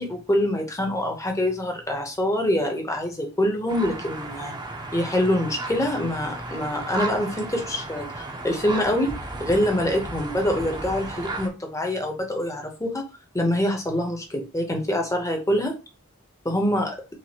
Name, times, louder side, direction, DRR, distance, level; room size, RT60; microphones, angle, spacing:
voice 1, 0.0-4.5 4.9-9.1 9.4-13.0 13.3-15.7 16.4-17.0, left 1 dB, 15° left, 3 dB, 0.9 m, -25 dB
sound 1, 3.7-11.5, right 2 dB, 20° right, 0.7 m, -34 dB
5.7 x 2.5 x 2.9 m, 0.31 s
head